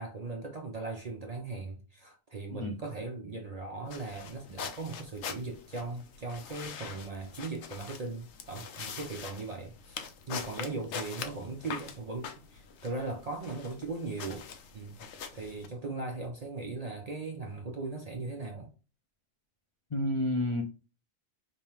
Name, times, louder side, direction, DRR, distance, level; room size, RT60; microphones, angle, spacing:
voice 1, 0.0-14.5 14.7-15.0 15.3-18.7, right 3 dB, 50° right, 0.5 m, -38 dB
sound 1, 3.9-15.7, left 6 dB, 80° left, 0.9 m, -44 dB
voice 2, 19.9-20.6, left 1 dB, 40° left, 0.5 m, -30 dB
5.3 x 2.1 x 2.9 m
omnidirectional pair, 1.2 m